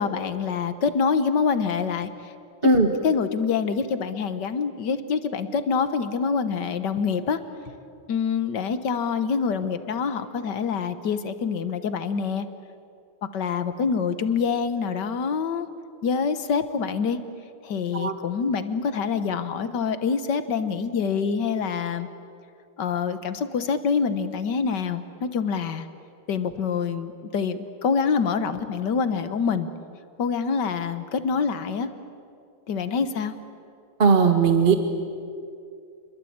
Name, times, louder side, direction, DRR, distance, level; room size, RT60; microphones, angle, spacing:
voice 1, 0.0-2.1 3.0-7.4 8.1-12.5 13.3-15.7 16.0-17.2 17.6-22.1 22.8-25.9 26.3-29.7 30.2-31.9 32.7-33.4, left 6 dB, 55° left, 11 dB, 1.7 m, -26 dB
voice 2, 34.0-34.8, right 4 dB, 30° right, 6 dB, 1.4 m, -18 dB
28.5 x 22.0 x 8.8 m, 2.4 s
omnidirectional pair, 2.4 m